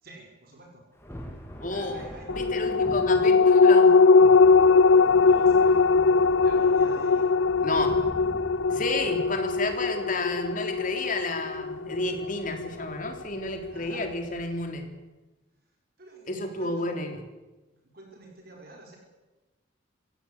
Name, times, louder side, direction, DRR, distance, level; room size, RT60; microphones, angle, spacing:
voice 1, 0.0-0.8 1.7-3.1 5.2-5.8 6.4-7.3 13.7-14.0 16.0-17.1 17.9-19.0, right 1 dB, 50° right, 0 dB, 5.2 m, -48 dB
Thunder, 0.9-14.8, equal, 15° left, 3.6 m, -45 dB
voice 2, 1.6-2.0 2.3-3.9 7.6-7.9 8.7-14.8 16.3-17.2, left 2 dB, 45° left, 4 dB, 3.7 m, -31 dB
sound 1, 2.3-13.1 13.5-13.6, left 4 dB, 85° left, 0.7 m, -20 dB
26.5 x 16.0 x 8.3 m, 1.1 s
head